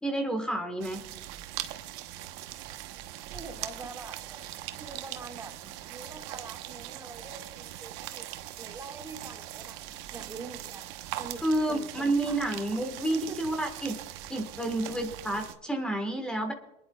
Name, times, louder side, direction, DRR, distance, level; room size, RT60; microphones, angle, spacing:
voice 1, 0.0-1.0 11.4-14.0 14.3-16.5, right 1 dB, 5° left, 4 dB, 1.6 m, -30 dB
sound 1, 0.8-15.5, right 13 dB, 80° right, 1.1 m, -41 dB
voice 2, 3.3-4.4 4.8-8.3 8.5-9.8 10.1-10.9 11.2-12.4 13.1-13.5, right 4 dB, 20° right, 3 dB, 1.9 m, -45 dB
26.0 x 10.5 x 2.4 m, 0.92 s
supercardioid pair, 120°, 14 cm